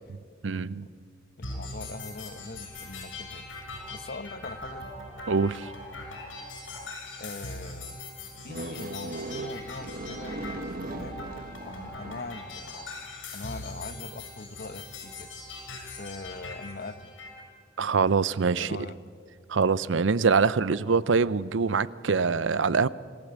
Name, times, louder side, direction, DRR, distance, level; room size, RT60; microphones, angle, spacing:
voice 1, 0.4-0.9 5.3-5.7 17.8-18.8 19.5-22.9, right 5 dB, 75° right, 19 dB, 0.6 m, -24 dB
sound 1, 1.4-17.4, left 2 dB, 75° left, 6.6 m, -41 dB
voice 2, 1.4-3.4 3.9-4.9 7.2-8.0 8.4-10.7 11.0-11.2 11.7-12.9 13.3-15.3 15.7-17.1 18.5-19.0, left 3 dB, 50° left, 13 dB, 0.9 m, -41 dB
sound 2, 8.5-12.5, right 2 dB, 50° right, 1.1 m, -38 dB
26.5 x 16.5 x 8.1 m, 2.1 s
head